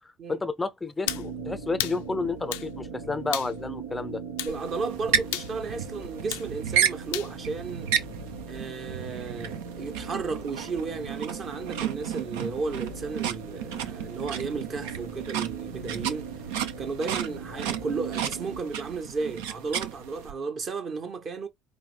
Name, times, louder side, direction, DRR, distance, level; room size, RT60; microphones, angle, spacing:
voice 1, 0.0-4.2, left 3 dB, 15° left, 0.5 m, -31 dB
sound 1, 1.0-18.6, right 5 dB, 90° right, 1.1 m, -40 dB
sound 2, 1.1-1.3 1.8-2.0 2.5-2.7 3.3-3.5 4.4-4.6 5.3-5.5 6.3-6.5 7.1-7.3, left 14 dB, 65° left, 0.4 m, -32 dB
voice 2, 4.4-7.9 8.5-16.3 16.8-21.5, right 4 dB, 40° right, 1.2 m, -34 dB
sound 3, 4.5-20.3, right 9 dB, 65° right, 0.6 m, -33 dB
4.8 x 2.7 x 3.3 m
figure-of-eight pair, 60°, 0 cm